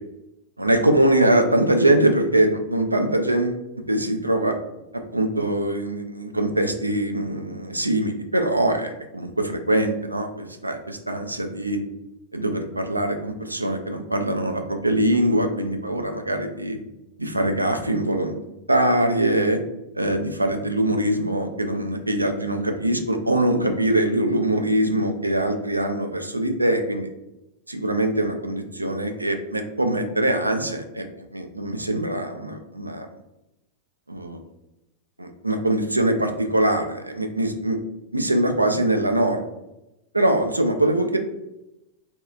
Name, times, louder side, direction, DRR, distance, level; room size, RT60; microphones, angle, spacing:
voice 1, 0.6-3.6 3.9-4.6 5.1-11.8 12.3-16.8 17.2-18.4 18.7-19.6 19.9-27.1 27.7-33.1 34.1-34.4 35.2-37.8 38.1-39.4 40.1-41.2, right 1 dB, 85° right, 6 dB, 0.3 m, -23 dB
4.1 x 2.3 x 2.4 m, 0.94 s
figure-of-eight pair, 90°, 0 cm